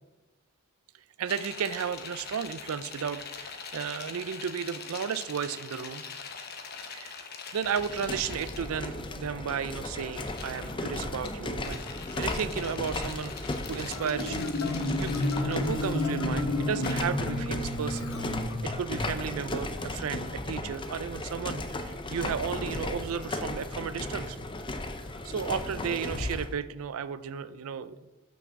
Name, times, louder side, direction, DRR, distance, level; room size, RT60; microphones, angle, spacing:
voice 1, 1.2-6.0 6.9-7.1 7.5-11.8 12.2-14.5 15.0-24.4 25.2-28.0, right 7 dB, 80° right, 14 dB, 0.4 m, -34 dB
sound 1, 1.3-8.7 10.0-10.7 11.2-16.0 16.8-17.0, left 5 dB, 45° left, 0.9 m, -43 dB
sound 2, 7.7-26.5, left 2 dB, 20° left, 0.5 m, -36 dB
Marimba xylophone, 13.9-19.0, left 1 dB, 75° left, 1.2 m, -31 dB
6.0 x 6.0 x 6.8 m, 1.0 s
head